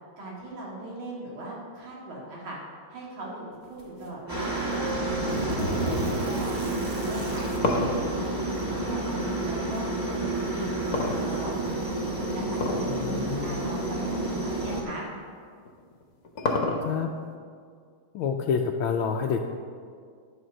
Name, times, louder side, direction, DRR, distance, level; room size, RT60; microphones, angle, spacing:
voice 1, 0.2-2.6 2.9-5.8 6.2-9.0 9.4-11.6 12.1-15.1, right 2 dB, 65° right, -5 dB, 2.8 m, -39 dB
sound 1, 3.8-4.1 4.7-7.7 8.8-8.9 9.8-9.9 10.4-11.8, right 1 dB, 40° right, 1.0 m, -35 dB
Aircraft, 4.3-14.8, right 2 dB, 10° right, 1.2 m, -30 dB
sound 2, 7.6-9.6 10.9-11.8 12.5-13.0 13.3-13.4 14.2-14.3 15.7-17.2, left 3 dB, 50° left, 1.2 m, -28 dB
voice 2, 12.9-13.6 16.8-17.1 18.1-19.5, left 6 dB, 80° left, 2 dB, 1.3 m, -28 dB
11.5 x 5.0 x 6.3 m, 2.1 s
omnidirectional pair, 2.4 m